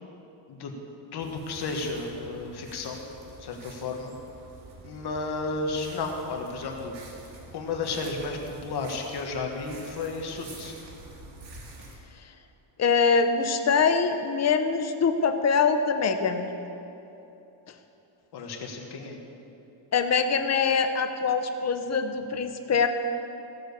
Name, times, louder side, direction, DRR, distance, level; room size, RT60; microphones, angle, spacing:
voice 1, 1.1-3.0 3.4-4.2 4.8-6.9 7.5-10.8 18.3-19.2, left 3 dB, 55° left, 2 dB, 1.5 m, -33 dB
sound 1, 1.2-11.9, right 2 dB, 60° right, 2.2 m, -47 dB
voice 2, 12.8-16.5 19.9-22.9, left 5 dB, 35° left, 8 dB, 0.7 m, -24 dB
15.5 x 7.7 x 6.7 m, 3.0 s
cardioid pair, 170°, 48 cm